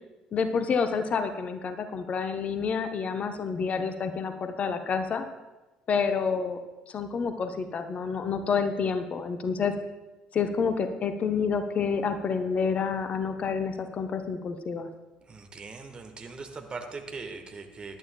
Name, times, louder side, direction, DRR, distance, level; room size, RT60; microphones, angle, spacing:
voice 1, 0.3-5.2 5.9-6.6 6.9-9.8 10.3-14.9, left 5 dB, 40° left, 8 dB, 0.8 m, -28 dB
voice 2, 15.3-18.0, right 4 dB, 30° right, 5 dB, 1.4 m, -40 dB
18.0 x 11.0 x 2.3 m, 1.1 s
figure-of-eight pair, 55°, 3 cm